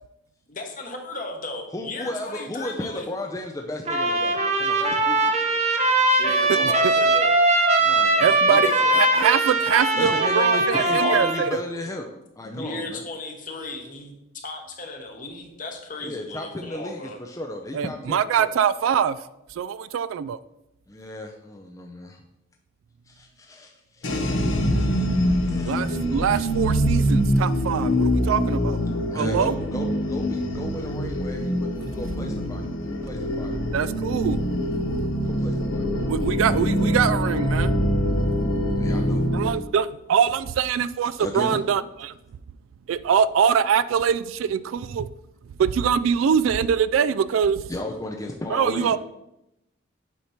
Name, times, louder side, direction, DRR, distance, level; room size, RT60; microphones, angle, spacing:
voice 1, 0.5-3.1 6.2-7.3 8.4-8.9 12.4-17.2, left 2 dB, 40° left, 2 dB, 1.1 m, -36 dB
voice 2, 1.7-5.4 7.8-8.6 10.0-12.1 12.4-13.0 16.0-18.5 20.9-22.2 23.1-24.4 25.5-25.8 26.2-26.5 29.1-33.5 35.2-36.1 36.8-37.0 38.7-39.2 41.2-41.6 47.7-49.0, left 1 dB, 15° left, 1 dB, 0.4 m, -34 dB
Trumpet, 3.9-11.5, right 2 dB, 30° right, 0.7 m, -21 dB
voice 3, 6.5-6.9 8.2-11.5 17.7-19.2 19.6-20.4 25.6-28.8 29.1-29.5 33.7-34.4 36.1-37.7 39.3-41.8 42.9-45.1 45.6-47.6 48.5-49.0, right 7 dB, 80° right, 16 dB, 0.3 m, -23 dB
sound 1, 24.0-39.5, equal, 70° left, 0.9 m, -24 dB
8.2 x 2.9 x 5.7 m, 0.88 s
head